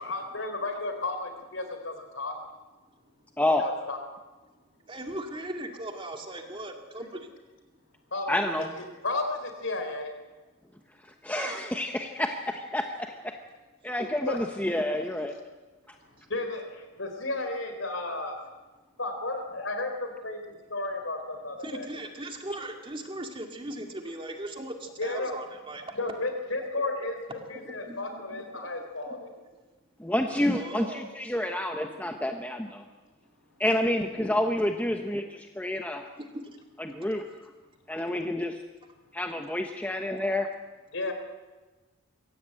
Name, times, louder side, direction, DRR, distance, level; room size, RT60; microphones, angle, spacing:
voice 1, 0.0-2.3 3.6-4.0 8.1-8.4 8.8-10.1 14.3-14.4 16.0-18.4 19.0-21.9 25.0-25.3 26.0-29.3 40.9-41.1, left 2 dB, 65° left, 6 dB, 4.1 m, -33 dB
voice 2, 4.9-7.3 11.3-11.6 14.0-14.1 16.2-16.3 21.6-26.1 26.6-28.7 29.1-29.2 30.5-31.0 36.2-36.5, right 1 dB, 25° right, 3 dB, 2.2 m, -39 dB
voice 3, 8.3-8.7 11.2-13.4 13.8-15.3 30.0-32.8 33.6-36.0 36.8-37.2 37.9-38.6 39.1-40.5, left 1 dB, 5° left, 4 dB, 1.0 m, -29 dB
23.5 x 16.5 x 8.9 m, 1.2 s
head